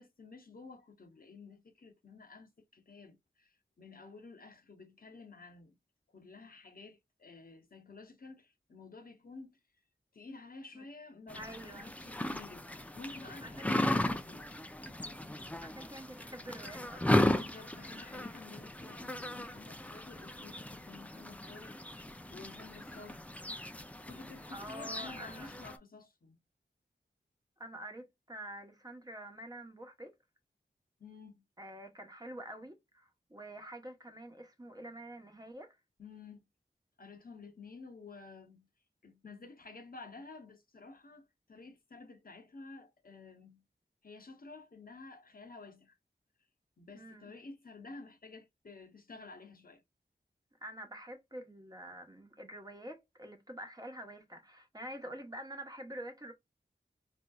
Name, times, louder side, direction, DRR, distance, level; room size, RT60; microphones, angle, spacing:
voice 1, 0.0-5.8 6.1-9.6 10.1-12.7 12.9-14.5 17.3-23.3 24.0-26.4 31.0-31.4 36.0-36.5 37.0-38.7 39.0-43.6 44.0-45.9 46.8-49.8, left 3 dB, 50° left, 0.8 m, -52 dB
sound 1, 11.3-25.8, left 1 dB, 5° left, 0.4 m, -36 dB
voice 2, 11.3-11.9 13.4-13.8 15.6-17.3 24.5-25.5 27.6-30.1 31.6-35.8 46.9-47.3 50.6-56.3, right 1 dB, 20° right, 0.9 m, -47 dB
4.2 x 2.6 x 2.3 m
wide cardioid pair, 65°, 19 cm